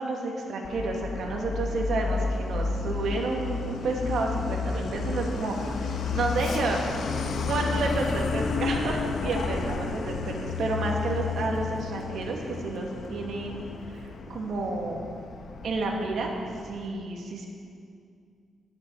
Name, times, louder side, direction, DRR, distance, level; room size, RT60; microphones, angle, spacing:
voice 1, 0.0-7.1 7.5-13.6 14.3-15.0 15.6-16.3 16.6-17.5, right 3 dB, 65° right, 0 dB, 2.4 m, -30 dB
Truck, 0.6-16.9, left 4 dB, 60° left, 1.2 m, -32 dB
10.5 x 10.0 x 9.5 m, 2.3 s
cardioid pair, 145°, 0 cm